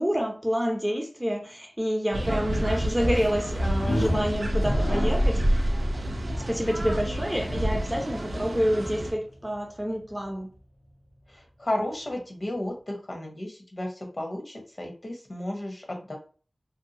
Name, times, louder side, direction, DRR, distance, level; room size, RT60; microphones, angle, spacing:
voice 1, 0.0-5.4 6.5-10.5, equal, 15° right, 0.6 m, -28 dB
sound 1, 2.1-9.1, equal, 70° right, 0.5 m, -30 dB
sound 2, 3.6-9.5, equal, 85° left, 0.6 m, -28 dB
voice 2, 11.3-16.2, left 1 dB, 50° left, 0.9 m, -33 dB
2.7 x 2.2 x 2.7 m
wide cardioid pair, 45°, 0 cm